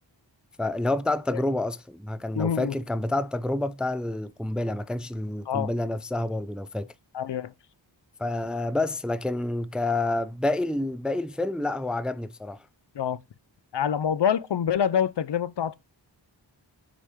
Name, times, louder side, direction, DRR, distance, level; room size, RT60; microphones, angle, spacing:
voice 1, 0.6-6.9 8.2-12.6, left 2 dB, ahead, 0.4 m, -28 dB
voice 2, 2.3-2.8 5.5-5.7 7.1-7.5 12.9-13.2 13.7-15.8, left 8 dB, 65° left, 0.5 m, -26 dB
7.3 x 4.9 x 3.5 m
wide cardioid pair, 45°, 45 cm